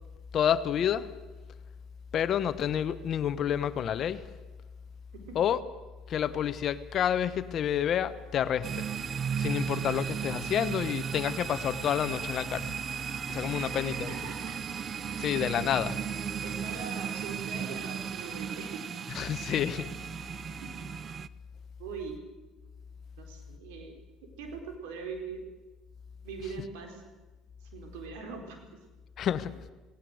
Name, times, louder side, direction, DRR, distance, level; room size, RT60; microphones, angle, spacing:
voice 1, 0.3-1.1 2.1-4.3 5.3-5.6 6.1-8.9 9.4-12.7 13.3-14.1 15.2-16.0 19.1-19.9 29.2-29.6, left 9 dB, 50° left, 13 dB, 1.2 m, -29 dB
sound 1, 8.6-21.3, right 7 dB, 40° right, 0.7 m, -35 dB
voice 2, 13.5-14.6 16.2-18.9 20.6-20.9 21.8-22.2 23.2-25.4 26.2-27.0 27.7-28.8, right 5 dB, 85° right, 4 dB, 4.5 m, -42 dB
18.5 x 18.0 x 8.0 m, 1.2 s
supercardioid pair, 90°, 0 cm